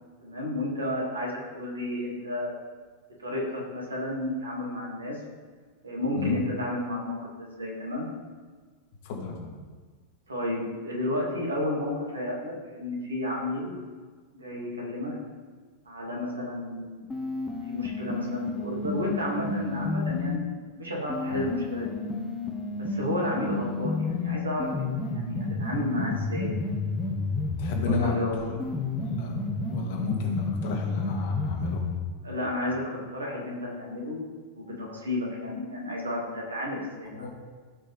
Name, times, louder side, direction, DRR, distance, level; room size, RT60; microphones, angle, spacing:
voice 1, 0.2-2.5 3.2-5.2 5.8-8.1 10.3-13.7 14.4-15.1 15.9-17.1 17.7-20.4 20.8-22.0 22.9-26.7 27.9-28.3 32.2-32.8 33.1-37.3, left 1 dB, 75° right, -3 dB, 2.6 m, -32 dB
voice 2, 9.0-9.5 21.3-21.5 27.6-29.4 29.7-31.8 37.2-37.3, left 4 dB, 50° left, 0 dB, 2.0 m, -32 dB
sound 1, 17.1-20.4 21.1-28.1 28.6-32.1, left 3 dB, 10° left, 1.4 m, -31 dB
15.0 x 5.4 x 3.6 m, 1.5 s
figure-of-eight pair, 90°, 0 cm